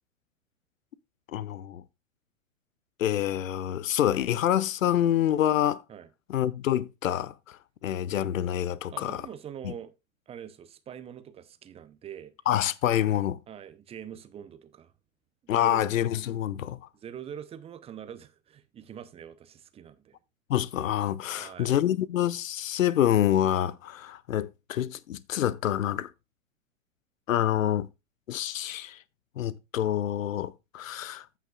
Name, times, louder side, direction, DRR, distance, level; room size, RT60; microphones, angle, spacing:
voice 1, 1.3-1.8 3.0-5.8 6.3-9.2 9.6-9.7 12.5-13.4 15.5-16.8 20.5-26.1 27.3-27.9 28.3-29.0 29.4-31.3, left 11 dB, 75° left, 0.7 m, -27 dB
voice 2, 8.9-9.9 10.3-12.3 13.5-14.9 15.5-15.8 16.9-20.2 21.4-21.8, right 9 dB, 15° right, 0.7 m, -44 dB
14.5 x 5.7 x 2.4 m
hypercardioid pair, 110°, 40 cm